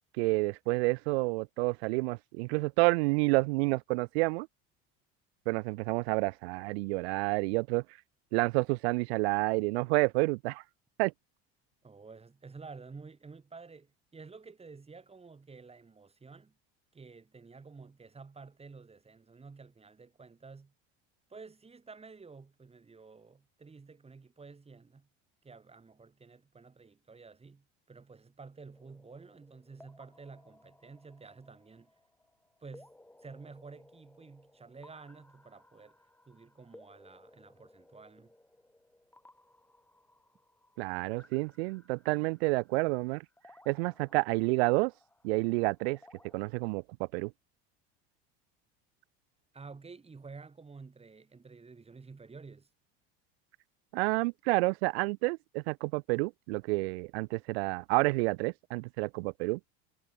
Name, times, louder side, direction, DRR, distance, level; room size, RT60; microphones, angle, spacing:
voice 1, 0.2-4.5 5.5-7.8 8.3-10.6 11.0-11.1 40.8-43.2 43.7-44.9 45.2-46.0 46.3-47.3 53.9-59.6, right 26 dB, 85° right, 0.8 m, -29 dB
voice 2, 11.8-16.6 16.9-20.7 21.3-25.1 25.4-31.9 32.6-32.9 33.2-36.0 36.3-38.3 49.5-52.7, right 4 dB, 20° right, 4.5 m, -51 dB
sound 1, 28.7-46.5, left 1 dB, 5° left, 4.2 m, -61 dB
supercardioid pair, 100°, 31 cm